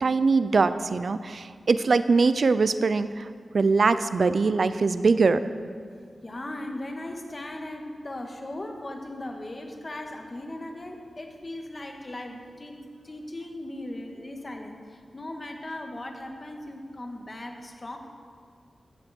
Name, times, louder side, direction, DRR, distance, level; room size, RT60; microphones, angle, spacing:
voice 1, 0.0-3.3 3.5-5.4, right 4 dB, 70° right, 13 dB, 0.6 m, -22 dB
voice 2, 5.9-18.0, left 1 dB, 40° left, 3 dB, 2.0 m, -38 dB
15.0 x 14.0 x 4.6 m, 2.1 s
cardioid pair, 55°, 0 cm